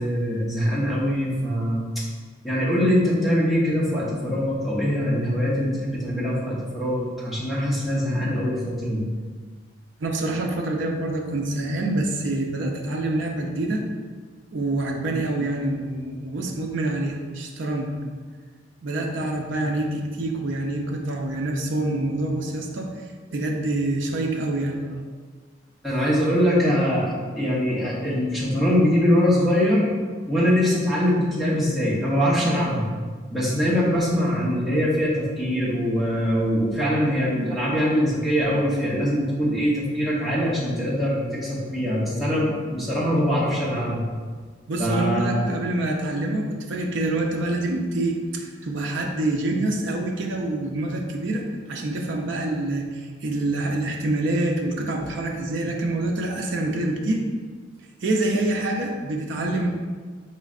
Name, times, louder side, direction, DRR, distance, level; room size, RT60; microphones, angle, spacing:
voice 1, 0.0-1.8 2.4-9.1 25.8-29.9 30.3-32.9 33.3-44.0 44.8-45.4, equal, ahead, -8 dB, 0.8 m, -23 dB
voice 2, 10.0-13.8 14.5-17.9 18.8-22.9 23.3-25.0 44.7-57.2 58.0-59.7, right 2 dB, 70° right, 1 dB, 0.5 m, -26 dB
4.7 x 3.1 x 2.4 m, 1.5 s
head